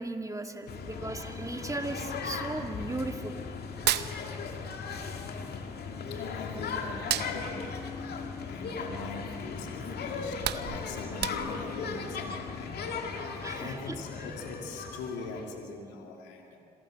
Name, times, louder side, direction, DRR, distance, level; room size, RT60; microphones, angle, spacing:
voice 1, 0.0-3.4 13.4-13.9, right 2 dB, 20° right, 5 dB, 2.0 m, -36 dB
sound 1, 0.7-15.6, left 5 dB, 65° left, 2.1 m, -37 dB
Hands, 3.7-5.0 5.2-6.5 6.9-9.2 9.6-9.8 10.1-11.8, right 12 dB, 70° right, 0.7 m, -33 dB
voice 2, 4.1-4.4 5.8-12.8 13.2-16.6, left 4 dB, 90° left, 2 dB, 2.6 m, -42 dB
26.5 x 17.0 x 6.5 m, 2.4 s
supercardioid pair, 50°, 18 cm